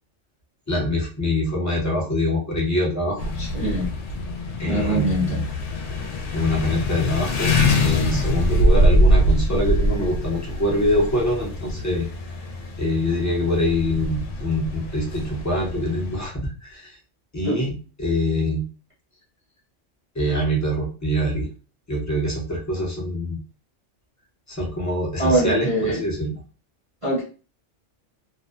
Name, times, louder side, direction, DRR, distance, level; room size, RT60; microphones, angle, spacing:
voice 1, 0.7-3.3 4.6-5.4 6.3-12.1 12.8-17.0 17.3-18.7 20.1-21.5 21.9-23.4 24.5-26.4, left 1 dB, 20° left, -3 dB, 0.6 m, -24 dB
sound 1, 3.2-16.3, equal, 85° left, 0.9 m, -23 dB
voice 2, 3.4-4.0 4.6-5.4 17.4-17.6 25.2-26.0 27.0-27.2, right 1 dB, 30° right, -6 dB, 0.7 m, -23 dB
2.6 x 2.0 x 2.4 m, 0.36 s
omnidirectional pair, 1.2 m